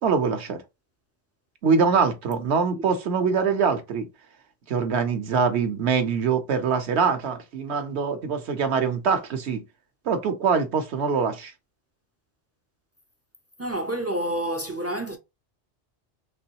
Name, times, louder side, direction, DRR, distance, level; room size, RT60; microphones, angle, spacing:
voice 1, 0.0-0.6 1.6-4.1 4.7-9.6 10.1-11.5, right 5 dB, 70° right, 1.0 m, -23 dB
voice 2, 13.6-15.2, right 1 dB, 25° right, 0.3 m, -28 dB
3.9 x 3.0 x 2.8 m
omnidirectional pair, 1.2 m